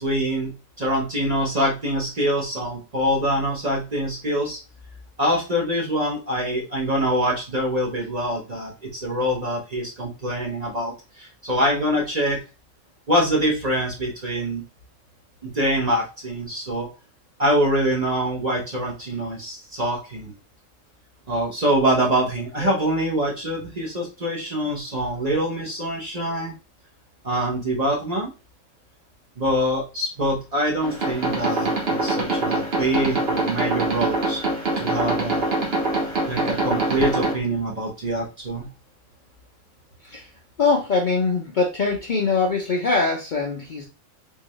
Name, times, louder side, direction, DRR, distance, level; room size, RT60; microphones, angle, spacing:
voice 1, 0.0-4.6 5.2-12.4 13.1-14.6 15.4-16.9 17.4-20.3 21.3-26.5 27.2-28.3 29.4-34.4 34.7-35.5 36.3-38.7, equal, 35° right, -2 dB, 0.8 m, -24 dB
sound 1, 30.8-37.3, right 2 dB, 50° right, 1.2 m, -24 dB
voice 2, 40.6-43.9, left 4 dB, 50° left, 0 dB, 0.6 m, -22 dB
3.7 x 2.8 x 3.0 m, 0.30 s
omnidirectional pair, 1.3 m